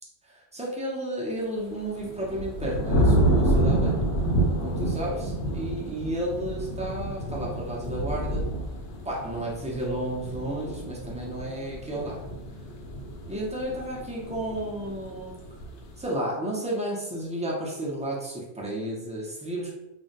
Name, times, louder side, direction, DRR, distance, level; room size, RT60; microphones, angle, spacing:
voice 1, 0.2-4.0 4.6-8.4 9.0-12.2 13.3-15.4 16.0-19.7, right 1 dB, 10° right, -4 dB, 0.3 m, -32 dB
sound 1, 1.8-16.0, right 1 dB, 80° left, 0.9 m, -28 dB
2.5 x 2.1 x 3.9 m, 0.95 s
omnidirectional pair, 1.1 m